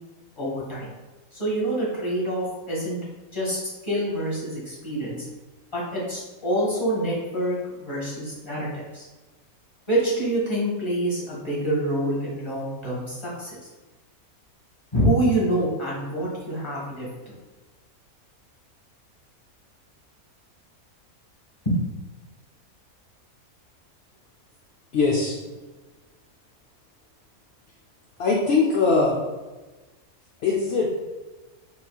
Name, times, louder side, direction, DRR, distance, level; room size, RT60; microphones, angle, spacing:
voice 1, 0.4-1.0 1.3-3.0 3.3-5.2 5.7-9.0 9.9-13.6 14.9-17.1 21.6-22.0, right 1 dB, 20° left, -6 dB, 1.3 m, -26 dB
voice 2, 24.9-25.4 28.2-29.2 30.4-30.9, left 4 dB, 60° left, -3 dB, 0.7 m, -21 dB
4.0 x 4.0 x 2.3 m, 1.2 s
omnidirectional pair, 1.5 m